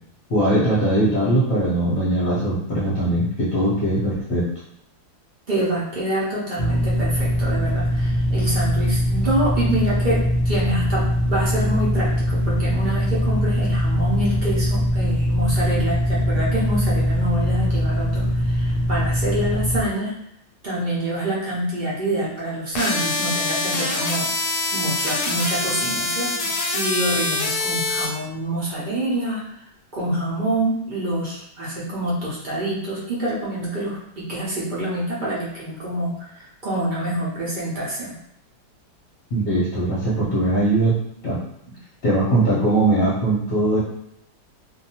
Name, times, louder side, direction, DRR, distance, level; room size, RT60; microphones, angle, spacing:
voice 1, 0.3-4.5 39.3-41.0 41.2-41.4 42.0-43.8, right 1 dB, 50° left, -8 dB, 0.8 m, -20 dB
voice 2, 5.5-10.2 10.4-20.1 20.6-24.2 24.7-29.4 29.9-38.1, right 1 dB, 75° right, -7 dB, 0.4 m, -26 dB
sound 1, 6.6-19.8, equal, 65° left, 0.4 m, -21 dB
sound 2, 22.7-28.1, left 2 dB, 90° left, 1.2 m, -24 dB
2.6 x 2.2 x 2.8 m, 0.73 s
omnidirectional pair, 1.8 m